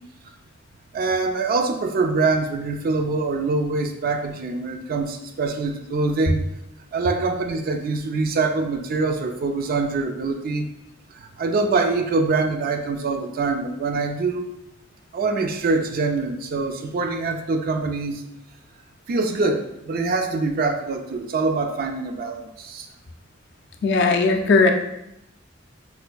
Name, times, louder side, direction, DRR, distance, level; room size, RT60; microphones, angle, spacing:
voice 1, 0.9-6.4 6.9-10.7 11.1-14.5 15.1-18.2 19.1-22.9, right 3 dB, 50° right, 6 dB, 0.3 m, -24 dB
voice 2, 23.8-24.7, left 3 dB, 60° left, 4 dB, 0.4 m, -17 dB
4.3 x 2.5 x 2.2 m, 0.84 s
head